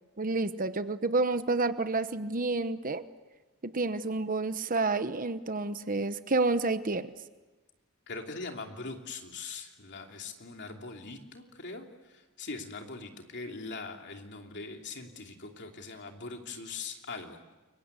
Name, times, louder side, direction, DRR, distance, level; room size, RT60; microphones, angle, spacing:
voice 1, 0.2-3.1 3.6-7.1, right 3 dB, 40° right, 11 dB, 1.0 m, -29 dB
voice 2, 8.1-17.5, left 3 dB, 55° left, 3 dB, 3.0 m, -42 dB
29.5 x 23.5 x 8.3 m, 1.2 s
head